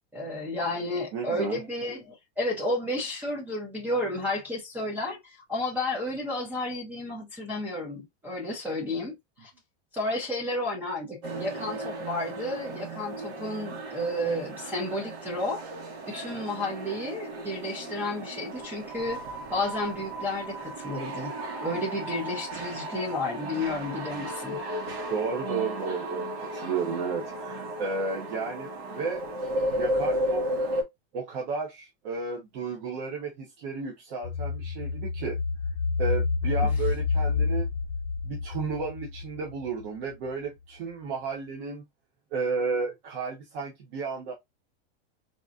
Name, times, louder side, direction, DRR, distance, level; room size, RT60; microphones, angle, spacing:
voice 1, 0.1-9.2 9.4-9.5 9.9-15.6 16.1-19.2 19.5-21.3 21.6-24.6, left 1 dB, 5° right, 0.4 m, -32 dB
voice 2, 1.1-1.6 25.1-29.2 29.8-30.4 31.1-35.4 36.0-37.7 38.2-41.8 42.3-44.3, right 4 dB, 45° right, 0.9 m, -33 dB
sound 1, 11.2-30.8, right 1 dB, 75° right, 1.4 m, -34 dB
sound 2, 34.2-39.9 40.3-40.4, left 4 dB, 80° left, 0.9 m, -29 dB
4.0 x 2.5 x 2.4 m
supercardioid pair, 180°, 32 cm